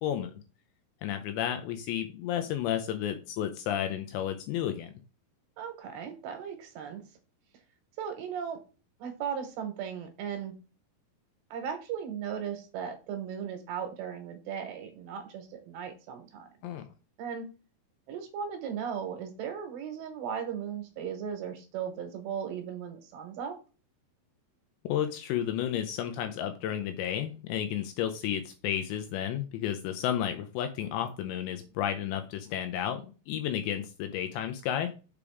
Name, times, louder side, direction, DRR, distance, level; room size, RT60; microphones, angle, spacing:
voice 1, 1.0-4.9 16.6-16.8 24.8-34.9, left 10 dB, 85° left, 7 dB, 2.6 m, -32 dB
voice 2, 5.6-7.0 8.0-8.6 9.0-10.5 11.5-16.5 17.2-17.5 18.1-23.6, right 7 dB, 75° right, 6 dB, 2.9 m, -37 dB
6.9 x 4.8 x 3.5 m, 0.34 s
omnidirectional pair, 5.5 m